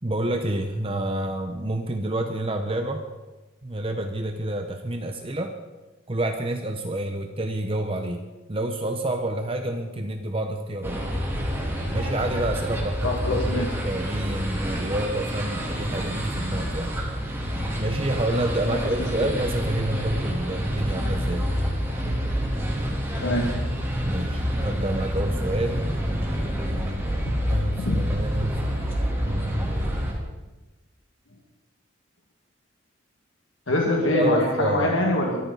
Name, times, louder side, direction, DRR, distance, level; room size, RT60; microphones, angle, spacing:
voice 1, 0.0-3.0 3.6-5.6 6.1-8.2 8.5-11.0 11.9-17.0 17.8-21.5 24.0-25.9 27.5-28.8 29.2-29.9 34.1-35.0, right 1 dB, 25° right, 5 dB, 1.0 m, -28 dB
sound 1, 10.8-30.1, equal, 10° right, 3.2 m, -28 dB
voice 2, 13.0-13.6 18.7-18.8 19.2-19.3 23.2-23.6 27.8-28.0 33.7-35.4, left 1 dB, 75° left, -1 dB, 2.1 m, -24 dB
23.5 x 14.0 x 4.1 m, 1.2 s
head